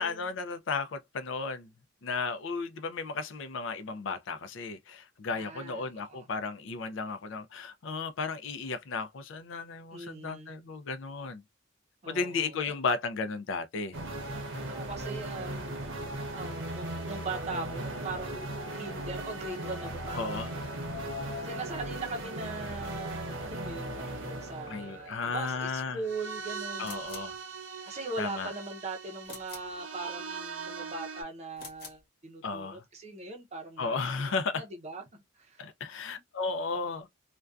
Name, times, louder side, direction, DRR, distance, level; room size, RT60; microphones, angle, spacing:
voice 1, 0.0-1.7 2.0-11.4 12.1-14.0 20.2-20.5 24.7-26.0 26.8-27.3 28.2-28.5 32.4-32.8 33.8-34.6 35.6-37.1, left 4 dB, 75° left, 0.4 m, -34 dB
voice 2, 5.3-6.3 9.9-10.6 12.0-12.7 14.7-20.6 21.4-27.0 27.9-35.6 36.0-36.2, right 3 dB, 35° right, 0.6 m, -40 dB
sound 1, 13.9-31.2, right 2 dB, 85° right, 0.8 m, -39 dB
sound 2, 18.1-25.8 26.1-26.7, left 5 dB, 5° left, 0.9 m, -48 dB
sound 3, 26.8-27.4 29.2-29.8 31.5-32.1, left 4 dB, 50° left, 1.0 m, -47 dB
2.5 x 2.2 x 2.3 m
head